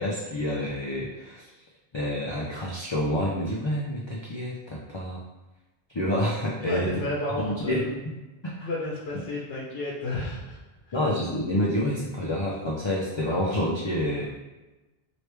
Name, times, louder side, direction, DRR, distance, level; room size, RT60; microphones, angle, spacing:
voice 1, 0.0-1.5 1.9-5.2 5.9-6.9 7.4-8.0 8.4-8.7 10.9-14.3, left 1 dB, 40° left, -4 dB, 0.4 m, -28 dB
voice 2, 6.6-7.8 8.6-10.6 10.9-11.1 14.2-14.3, left 2 dB, 75° left, -4 dB, 1.0 m, -32 dB
3.1 x 3.0 x 3.3 m, 1.1 s
omnidirectional pair, 1.0 m